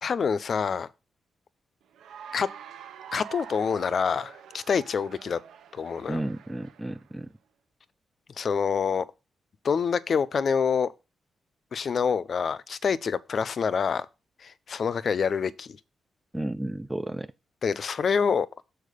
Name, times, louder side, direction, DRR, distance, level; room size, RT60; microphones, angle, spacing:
voice 1, 0.0-0.9 2.3-2.5 3.1-5.4 5.7-6.2 8.4-9.0 9.6-10.9 11.7-14.1 14.4-15.8 17.6-18.6, left 6 dB, 60° left, 0.5 m, -26 dB
Cheering / Applause, 1.9-7.1, right 8 dB, 85° right, 0.7 m, -46 dB
voice 2, 6.1-7.3 16.3-17.3, right 1 dB, 15° right, 0.5 m, -32 dB
6.6 x 4.3 x 5.0 m
supercardioid pair, 55°, 0 cm